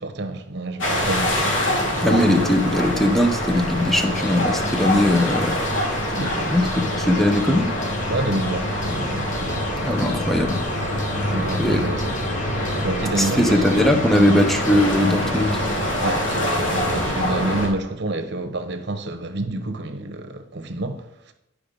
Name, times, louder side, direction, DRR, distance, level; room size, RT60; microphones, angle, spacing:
voice 1, 0.0-2.5 6.2-6.7 8.1-9.7 11.2-12.1 12.4-13.8 14.1-14.5 16.0-21.3, right 2 dB, 60° right, 0.9 m, -29 dB
sound 1, 0.8-17.7, left 1 dB, 75° left, 2.1 m, -25 dB
voice 2, 2.0-5.6 6.5-6.6 7.0-7.7 9.8-10.6 11.6-11.8 13.4-15.6, left 1 dB, ahead, 0.7 m, -19 dB
sound 2, 4.2-16.1, left 3 dB, 40° left, 0.9 m, -37 dB
10.0 x 4.9 x 5.2 m
head